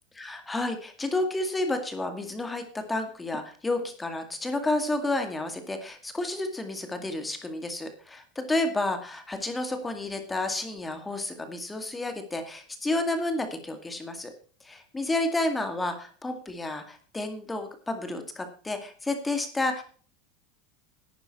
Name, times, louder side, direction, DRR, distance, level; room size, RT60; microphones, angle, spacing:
voice 1, 0.2-14.3 14.6-19.8, left 2 dB, 10° left, 7 dB, 2.1 m, -31 dB
11.5 x 9.6 x 4.3 m, 0.40 s
supercardioid pair, 130°, 0 cm